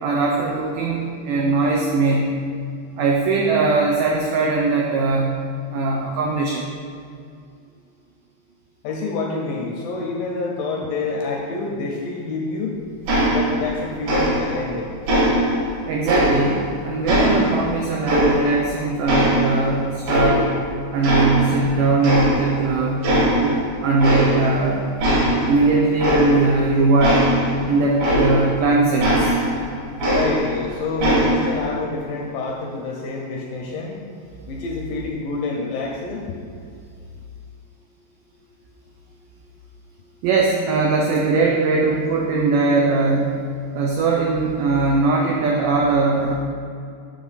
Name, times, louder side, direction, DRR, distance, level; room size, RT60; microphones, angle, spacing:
voice 1, 0.0-2.4 3.0-5.4 5.7-6.6 15.9-20.5 20.9-23.1 23.4-24.9 25.4-27.3 27.7-29.4 40.2-43.4 43.7-46.3, right 3 dB, 90° right, 0 dB, 1.8 m, -20 dB
voice 2, 8.8-12.7 13.3-14.9 30.1-33.9 34.5-36.2, left 3 dB, 75° left, -1 dB, 2.1 m, -27 dB
sound 1, 13.1-13.8 14.1-14.7 15.1-16.7 17.1-18.7 19.1-20.7 21.0-21.7 22.0-22.7 23.0-23.6 24.0-24.6 25.0-28.6 29.0-30.6 31.0-31.6, equal, 65° right, 3.6 m, -20 dB
7.7 x 6.5 x 4.1 m, 2.4 s
omnidirectional pair, 4.7 m